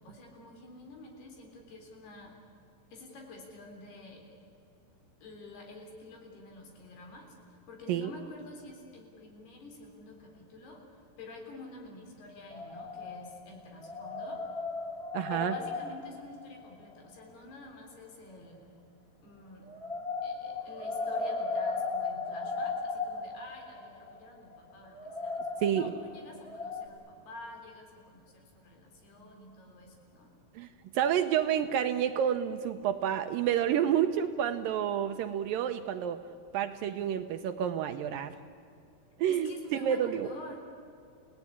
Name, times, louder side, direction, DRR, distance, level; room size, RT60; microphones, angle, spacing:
voice 1, 0.0-2.3 2.9-4.2 5.2-14.4 15.3-18.6 19.2-19.7 20.2-30.3 31.3-31.4 39.3-40.6, left 2 dB, 70° left, 1 dB, 5.6 m, -49 dB
sound 1, 12.5-13.5 13.8-16.9 19.6-26.9, left 3 dB, 35° left, 0.9 m, -36 dB
voice 2, 15.1-15.6 25.6-25.9 30.6-30.7 30.9-36.2 36.5-38.4 39.2-39.5 39.8-40.3, right 9 dB, 75° right, 8 dB, 2.1 m, -29 dB
30.0 x 17.5 x 9.8 m, 2.5 s
omnidirectional pair, 4.8 m